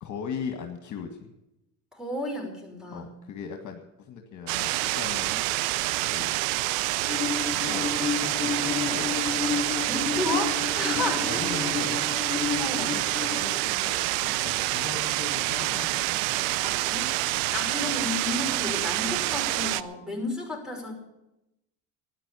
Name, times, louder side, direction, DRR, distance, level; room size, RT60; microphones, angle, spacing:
voice 1, 0.0-1.3 2.9-5.3 6.1-6.4 7.6-7.9 8.4-9.2 10.9-12.0 12.8-13.0 13.3-16.0 17.3-17.4, left 6 dB, 50° left, 4 dB, 1.9 m, -39 dB
voice 2, 1.9-3.1 9.9-11.4 12.6-13.0 16.6-17.1 17.5-20.9, left 2 dB, ahead, 2 dB, 5.4 m, -32 dB
sound 1, 4.5-19.8, right 18 dB, 85° right, 0.6 m, -27 dB
Bowed string instrument, 7.1-13.6, left 6 dB, 20° left, 0.8 m, -31 dB
13.0 x 9.9 x 8.4 m, 0.90 s
supercardioid pair, 80°, 38 cm